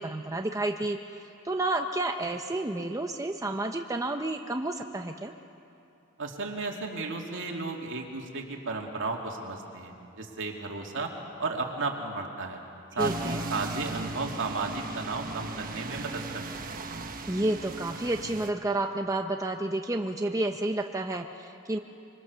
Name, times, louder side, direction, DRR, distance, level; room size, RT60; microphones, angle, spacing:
voice 1, 0.0-5.3 13.0-13.4 17.3-21.8, right 2 dB, 15° right, 4 dB, 0.7 m, -30 dB
voice 2, 6.2-11.1 11.4-12.6 12.9-16.7, right 3 dB, 60° right, 1 dB, 2.7 m, -34 dB
sound 1, 13.0-18.5, right 3 dB, 40° right, 1.2 m, -37 dB
24.5 x 24.0 x 6.8 m, 2.9 s
head